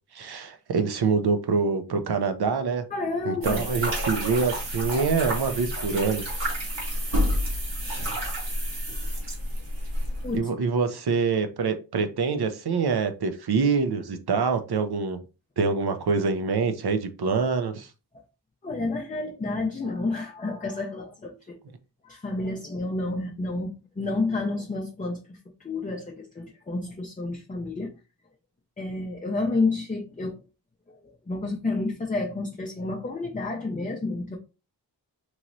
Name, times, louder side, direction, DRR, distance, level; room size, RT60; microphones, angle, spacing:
voice 1, 0.1-2.8 3.3-6.2 10.3-15.2 15.6-17.9, right 5 dB, 65° right, 0.6 m, -25 dB
voice 2, 2.9-3.6 4.1-4.2 10.2-10.5 18.6-21.6 22.0-25.4 25.6-28.0 28.8-30.4 30.9-34.4, left 3 dB, 20° left, 0.5 m, -30 dB
sound 1, 3.4-10.4, equal, 80° right, 1.4 m, -29 dB
3.0 x 2.9 x 2.6 m
wide cardioid pair, 65°, 42 cm